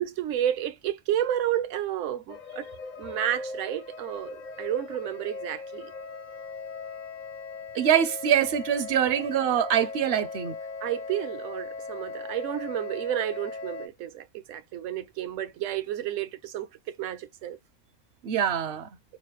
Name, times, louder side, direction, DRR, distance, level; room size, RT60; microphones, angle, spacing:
voice 1, 0.0-2.7 3.0-5.9 10.8-17.6, right 11 dB, 80° right, 1.0 m, -31 dB
sound 1, 2.3-13.9, left 4 dB, 60° left, 0.5 m, -39 dB
voice 2, 7.7-10.6 18.2-18.9, right 9 dB, 65° right, 0.7 m, -24 dB
3.9 x 2.0 x 3.0 m
omnidirectional pair, 1.3 m